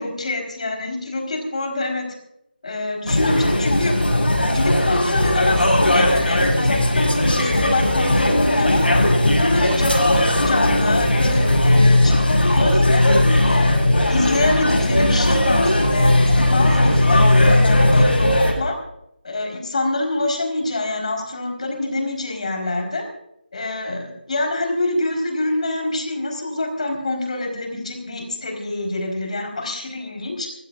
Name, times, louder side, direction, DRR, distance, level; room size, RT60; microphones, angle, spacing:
voice 1, 0.0-2.0 2.6-3.9 4.4-9.0 9.4-13.0 13.4-18.7 19.2-23.0 23.5-30.5, left 2 dB, 40° left, 2 dB, 4.4 m, -26 dB
sound 1, 3.1-18.5, left 1 dB, 80° left, 7.2 m, -17 dB
26.5 x 15.5 x 2.5 m, 0.80 s
figure-of-eight pair, 165°, 6 cm